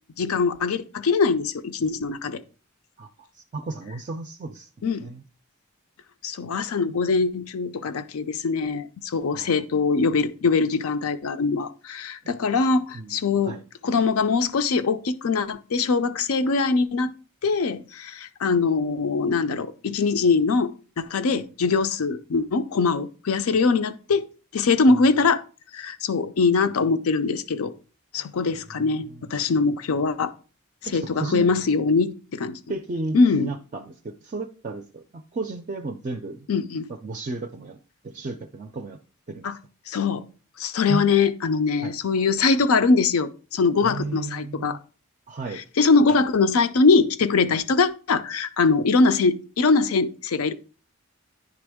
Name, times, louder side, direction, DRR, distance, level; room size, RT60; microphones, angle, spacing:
voice 1, 0.2-2.4 4.8-5.1 6.2-13.6 13.8-17.1 17.4-20.7 21.0-24.3 24.5-25.4 25.7-27.7 28.1-30.3 30.9-32.6 33.1-33.5 36.5-36.9 39.4-39.6 39.9-40.2 40.6-44.8 45.8-50.5, left 4 dB, 80° left, 0.5 m, -22 dB
voice 2, 3.3-4.7 5.0-5.2 9.3-9.5 12.9-13.2 13.4-13.6 24.9-25.0 28.7-29.3 30.9-31.5 32.7-36.5 36.9-37.8 38.0-39.0 39.3-39.5 40.9-41.0 41.8-41.9 43.8-44.8 45.3-45.6, right 3 dB, 35° right, 0.4 m, -33 dB
9.9 x 3.4 x 3.5 m
head